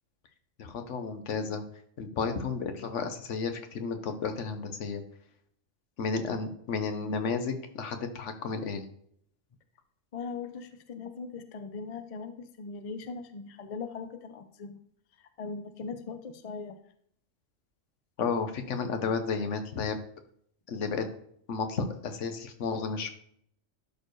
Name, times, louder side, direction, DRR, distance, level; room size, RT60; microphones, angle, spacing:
voice 1, 0.6-1.6 2.0-5.0 6.0-8.8 18.2-20.0 20.7-21.0 21.5-23.1, left 5 dB, 65° left, 8 dB, 1.2 m, -32 dB
voice 2, 10.1-14.8 15.2-16.8, left 4 dB, 45° left, 9 dB, 0.5 m, -40 dB
11.5 x 4.5 x 3.1 m, 0.66 s
omnidirectional pair, 1.4 m